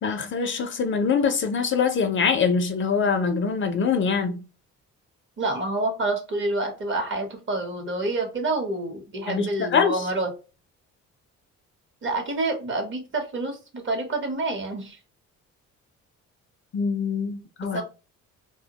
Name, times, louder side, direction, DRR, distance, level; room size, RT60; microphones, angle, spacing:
voice 1, 0.0-4.4 9.3-10.0 16.7-17.8, left 5 dB, 40° left, 0.4 m, -24 dB
voice 2, 5.4-10.3 12.0-15.0 17.7-17.8, right 2 dB, 40° right, 0.8 m, -28 dB
2.2 x 2.1 x 2.8 m
cardioid pair, 90°, 30 cm